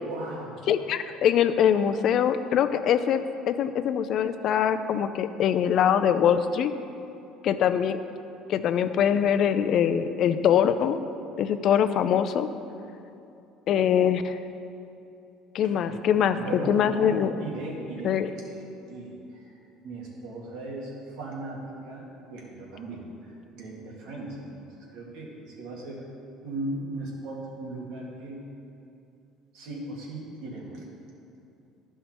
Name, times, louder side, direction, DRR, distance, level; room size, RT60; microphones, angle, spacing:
voice 1, 0.0-0.5 15.6-16.0 16.3-19.4 19.8-26.1 26.4-28.4 29.5-30.8, right 2 dB, 75° right, -3 dB, 2.0 m, -38 dB
voice 2, 0.7-6.7 7.4-8.0 8.5-11.0 11.4-12.5 13.7-14.4 15.5-17.3 18.0-18.3, left 9 dB, 50° left, 11 dB, 0.4 m, -23 dB
12.0 x 5.6 x 4.3 m, 2.7 s
cardioid pair, 140°, 0 cm